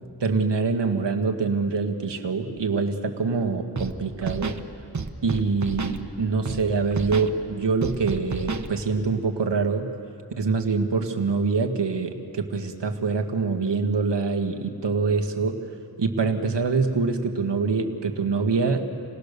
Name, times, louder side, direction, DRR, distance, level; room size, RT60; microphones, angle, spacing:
voice 1, 0.2-4.6 5.2-9.9 10.4-15.6 16.0-18.8, right 4 dB, 85° right, 5 dB, 1.9 m, -25 dB
Scratching (performance technique), 3.8-3.9 4.2-4.6 4.9-6.0 6.5-6.6 6.9-7.3 7.8-8.7, right 4 dB, 45° right, 1.3 m, -30 dB
28.5 x 19.0 x 6.8 m, 2.6 s
wide cardioid pair, 85°, 41 cm